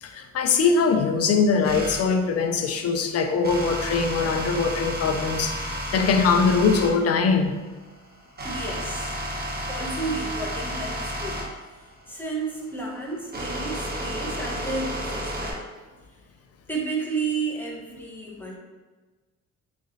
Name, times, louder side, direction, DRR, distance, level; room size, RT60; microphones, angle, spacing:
voice 1, 0.0-7.5, left 5 dB, 55° left, 5 dB, 0.5 m, -22 dB
sound 1, 1.6-2.0 3.4-6.9 7.6-15.5, equal, 30° right, 1.0 m, -32 dB
voice 2, 8.4-9.2 9.7-11.4 12.1-15.6 16.7-18.6, right 3 dB, 5° left, -3 dB, 0.9 m, -32 dB
3.6 x 3.1 x 2.6 m, 1.3 s
cardioid pair, 90°, 30 cm